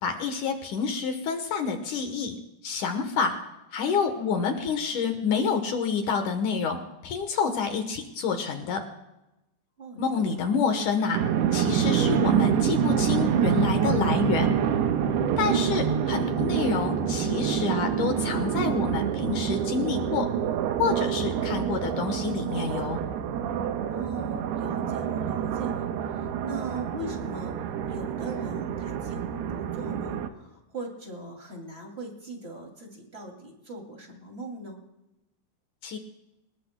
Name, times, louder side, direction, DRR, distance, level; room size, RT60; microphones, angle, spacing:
voice 1, 0.0-2.4 2.6-3.4 3.7-8.9 10.0-11.2 11.5-14.6 15.4-20.3 20.8-23.0 35.8-36.0, left 5 dB, 65° left, 6 dB, 2.2 m, -28 dB
voice 2, 9.8-10.4 15.8-16.1 23.9-34.8, right 1 dB, 20° right, 1 dB, 2.1 m, -40 dB
sound 1, 11.1-30.3, right 8 dB, 85° right, 3.0 m, -27 dB
25.0 x 20.5 x 2.2 m, 0.94 s
omnidirectional pair, 4.6 m